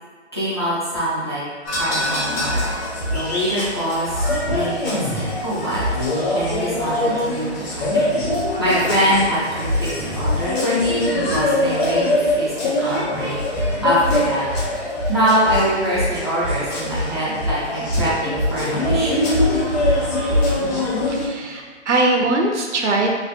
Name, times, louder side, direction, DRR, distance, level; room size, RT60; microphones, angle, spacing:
voice 1, 0.3-2.7 3.1-4.2 4.5-5.8 6.3-8.1 8.6-13.4 13.8-14.5 15.1-19.2, equal, 25° left, -9 dB, 0.3 m, -23 dB
sound 1, 1.7-21.3, left 1 dB, 60° left, 1.0 m, -23 dB
voice 2, 21.1-23.2, right 2 dB, 70° right, 1 dB, 0.6 m, -21 dB
3.2 x 2.2 x 2.7 m, 1.5 s
hypercardioid pair, 150°, 36 cm